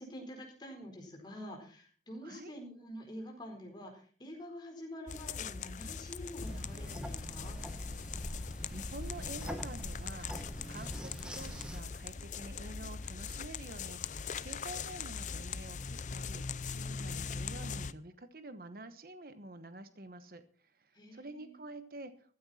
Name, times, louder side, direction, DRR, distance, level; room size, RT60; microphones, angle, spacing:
voice 1, 0.0-7.6 20.9-21.6, equal, 25° left, 2 dB, 4.3 m, -47 dB
voice 2, 2.2-2.5 8.3-8.4 8.7-20.4 21.1-22.1, right 2 dB, 55° right, 10 dB, 1.1 m, -48 dB
sound 1, 5.1-17.9, left 5 dB, 45° left, 0.5 m, -41 dB
sound 2, 6.4-11.8, equal, 5° right, 1.2 m, -43 dB
14.5 x 13.0 x 4.3 m, 0.43 s
head